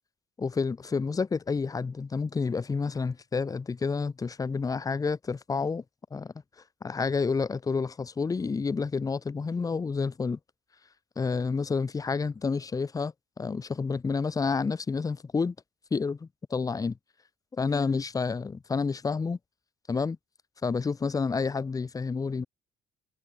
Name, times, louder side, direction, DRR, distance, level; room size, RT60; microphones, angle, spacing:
voice 1, 0.4-5.8 6.1-6.3 6.8-10.4 11.2-15.5 15.9-16.9 17.5-19.4 19.9-20.2 20.6-22.5, left 4 dB, 20° left, 0.8 m, -29 dB
cardioid pair, 110°, 17 cm